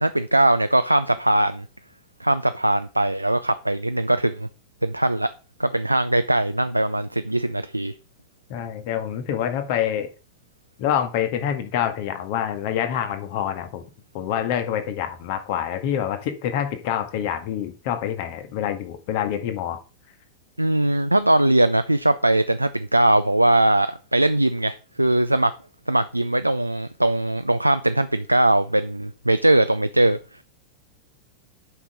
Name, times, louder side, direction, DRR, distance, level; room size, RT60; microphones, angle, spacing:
voice 1, 0.0-1.7 2.2-4.5 4.8-5.3 5.6-7.9 20.6-25.5 25.9-30.2, right 1 dB, 85° right, 0.4 m, -20 dB
voice 2, 8.5-10.1 10.8-13.8 14.1-19.8, left 9 dB, 50° left, 1.6 m, -26 dB
8.3 x 5.8 x 5.1 m
figure-of-eight pair, 90°, 0 cm